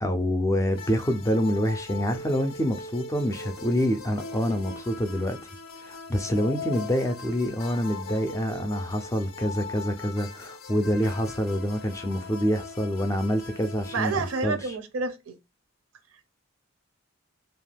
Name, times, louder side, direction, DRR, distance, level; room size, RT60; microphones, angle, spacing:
voice 1, 0.0-5.4 5.8-14.6, equal, 15° left, 0.3 m, -26 dB
sound 1, 0.7-14.4, left 3 dB, 75° left, 0.5 m, -40 dB
voice 2, 13.9-15.4, right 4 dB, 90° right, 0.5 m, -29 dB
2.4 x 2.2 x 3.3 m
head